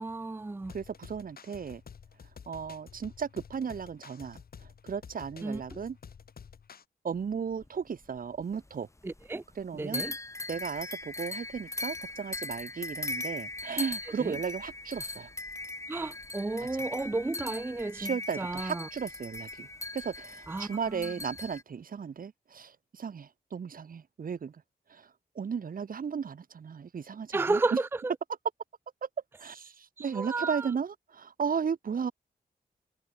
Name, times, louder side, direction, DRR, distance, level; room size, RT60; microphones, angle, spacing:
voice 1, 0.0-0.7 5.4-5.8 9.0-9.4 9.7-10.1 14.0-14.4 15.9-18.9 20.5-21.1 27.3-28.0 30.0-30.7, right 3 dB, 15° right, 0.5 m, -33 dB
sound 1, 0.6-6.8, left 6 dB, 80° left, 4.9 m, -50 dB
voice 2, 0.7-1.8 2.5-6.0 7.0-8.9 9.6-10.0 10.5-15.3 16.7-16.8 17.9-19.7 19.9-24.6 24.9-27.6 29.0-29.1 29.4-32.1, right 6 dB, 65° right, 1.6 m, -35 dB
sound 2, 7.1-8.7 9.0-9.6 9.9-21.6, left 2 dB, 20° left, 1.8 m, -39 dB
wide cardioid pair, 105°, 15 cm